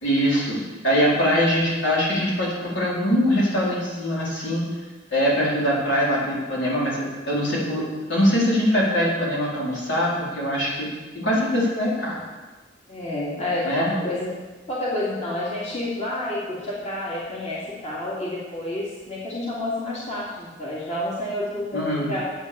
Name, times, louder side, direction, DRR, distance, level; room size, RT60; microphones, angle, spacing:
voice 1, 0.0-4.6 5.1-10.9 11.1-12.2 13.6-13.9 21.7-22.1, equal, 70° left, -5 dB, 4.4 m, -22 dB
voice 2, 12.9-14.3 14.7-22.3, left 1 dB, 35° left, -6 dB, 2.8 m, -29 dB
10.5 x 9.0 x 7.0 m, 1.3 s
head